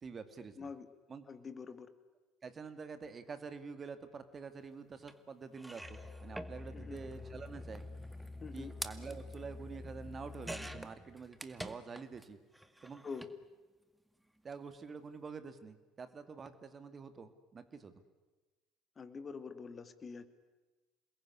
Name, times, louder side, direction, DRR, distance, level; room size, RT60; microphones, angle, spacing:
voice 1, 0.0-0.7 1.1-1.3 2.4-7.8 8.5-12.4 12.8-13.0 14.4-18.0, right 5 dB, 35° right, 10 dB, 2.4 m, -47 dB
voice 2, 0.6-0.9 1.3-1.9 6.7-7.0 8.4-8.7 13.0-13.3 19.0-20.3, left 5 dB, 30° left, 11 dB, 2.4 m, -45 dB
sound 1, 5.1-5.2 5.5-12.3 12.5-13.4 14.4-14.5 14.8-14.9, right 1 dB, 5° right, 2.0 m, -49 dB
Musical instrument, 5.8-10.9, left 3 dB, 15° left, 5.5 m, -48 dB
28.0 x 21.0 x 9.8 m, 1.2 s
figure-of-eight pair, 60°, 0 cm